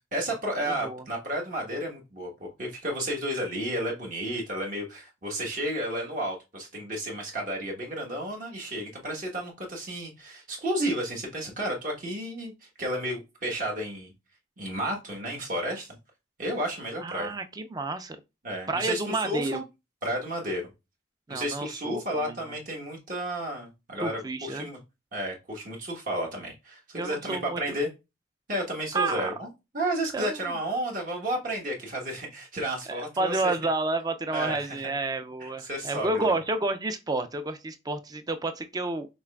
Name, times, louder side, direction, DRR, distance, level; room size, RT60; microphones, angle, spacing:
voice 1, 0.1-12.5 12.8-14.1 14.6-15.9 16.4-17.3 18.4-19.6 20.0-20.7 21.3-24.8 25.1-27.9 28.5-29.5 29.7-33.6 34.3-34.8 35.4-36.4, right 1 dB, 45° right, 1.2 m, -32 dB
voice 2, 0.7-1.0 17.0-18.2 18.7-19.6 21.3-22.4 24.0-24.7 26.9-27.8 28.9-29.3 30.1-30.6 33.2-39.1, right 2 dB, 20° right, 0.4 m, -30 dB
5.9 x 3.2 x 2.3 m
head